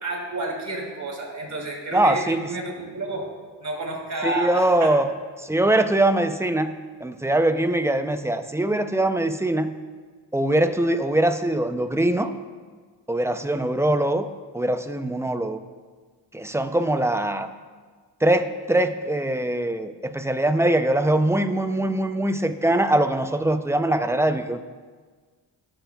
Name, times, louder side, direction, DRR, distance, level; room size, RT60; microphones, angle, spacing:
voice 1, 0.0-3.3 3.6-4.9, right 2 dB, 40° right, -2 dB, 2.6 m, -30 dB
voice 2, 1.9-2.4 4.2-5.1 5.4-6.7 7.0-9.7 10.3-12.3 13.1-14.3 14.5-15.6 16.3-17.5 18.2-24.6, right 1 dB, 5° right, 9 dB, 0.3 m, -22 dB
20.5 x 6.9 x 2.2 m, 1.5 s
cardioid pair, 110°, 44 cm